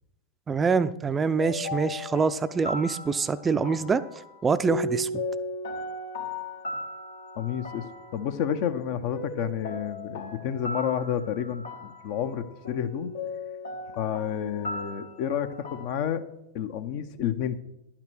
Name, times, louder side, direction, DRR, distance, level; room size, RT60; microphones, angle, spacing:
voice 1, 0.5-4.0 4.4-5.2, right 5 dB, 20° right, 13 dB, 0.5 m, -25 dB
sound 1, 1.4-15.9, left 2 dB, 75° left, 1.6 m, -37 dB
voice 2, 7.4-7.8 8.1-13.1 14.0-16.2 16.5-17.6, left 9 dB, 55° left, 9 dB, 0.8 m, -30 dB
11.0 x 5.9 x 6.2 m, 0.86 s
hypercardioid pair, 100°, 0 cm